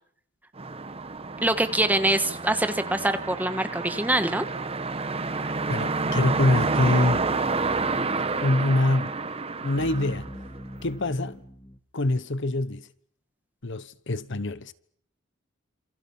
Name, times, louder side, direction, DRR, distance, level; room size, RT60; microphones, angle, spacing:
sound 1, 0.6-10.8, right 3 dB, 30° right, 1.1 m, -29 dB
voice 1, 1.4-4.4, right 1 dB, 10° right, 1.5 m, -24 dB
voice 2, 5.4-7.3 7.8-8.1 8.4-9.2 9.6-10.3 10.8-11.4 11.9-12.9 13.6-14.7, left 2 dB, 65° left, 1.1 m, -25 dB
sound 2, 6.7-11.8, equal, 10° left, 1.5 m, -42 dB
28.0 x 27.5 x 5.6 m
head